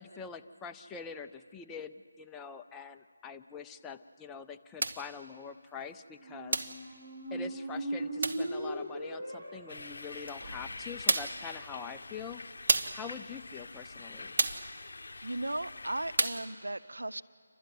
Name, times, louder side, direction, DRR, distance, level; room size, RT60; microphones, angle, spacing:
voice 1, 0.0-6.7 7.3-12.4 12.9-14.4, left 6 dB, 10° left, 6 dB, 0.5 m, -44 dB
sound 1, 4.8-5.1 6.5-6.8 8.2-8.5 10.3-10.4 11.1-11.5 12.7-13.1 14.4-14.7 16.2-16.5, right 3 dB, 55° right, 1.1 m, -30 dB
sound 2, 6.1-12.0, right 1 dB, 25° right, 5.9 m, -39 dB
sound 3, 9.7-16.2, left 3 dB, 65° left, 0.8 m, -45 dB
voice 2, 15.2-17.2, right 2 dB, 85° right, 13 dB, 0.6 m, -36 dB
29.0 x 12.5 x 9.2 m, 2.2 s
figure-of-eight pair, 160°, 0 cm